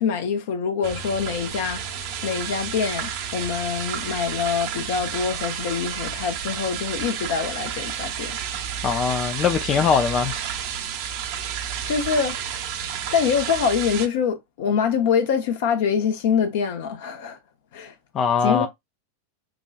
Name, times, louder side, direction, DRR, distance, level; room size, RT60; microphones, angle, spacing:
voice 1, 0.0-1.9 2.2-8.4 11.9-12.4 13.1-17.4 17.7-17.9 18.4-18.7, left 7 dB, 50° left, 0.8 m, -24 dB
sound 1, 0.8-14.1, right 8 dB, 45° right, 0.8 m, -31 dB
voice 2, 8.8-10.3 18.1-18.7, left 6 dB, 30° left, 0.4 m, -21 dB
6.0 x 2.3 x 2.3 m
figure-of-eight pair, 90°, 0 cm